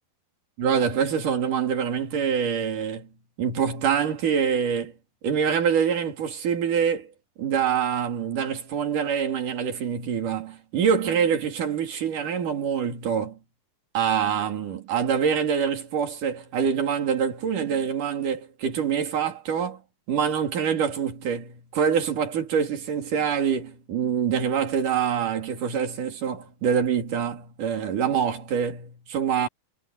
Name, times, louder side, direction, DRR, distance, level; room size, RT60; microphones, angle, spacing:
voice 1, 0.6-3.1 3.4-4.9 5.2-7.1 7.4-13.4 13.9-19.8 20.1-29.5, right 7 dB, 65° right, 4.5 m, -25 dB
omnidirectional pair, 4.0 m